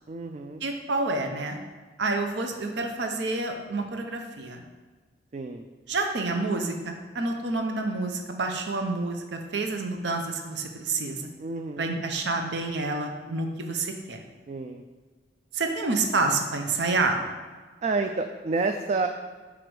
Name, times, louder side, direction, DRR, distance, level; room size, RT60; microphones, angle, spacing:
voice 1, 0.1-0.6 5.3-5.6 11.4-12.0 14.5-14.8 17.8-19.1, right 3 dB, 35° right, 6 dB, 0.3 m, -29 dB
voice 2, 0.6-1.6 2.0-4.6 5.9-11.3 11.8-14.2 15.5-17.2, right 3 dB, 70° right, 4 dB, 0.7 m, -28 dB
5.0 x 4.8 x 6.1 m, 1.4 s
head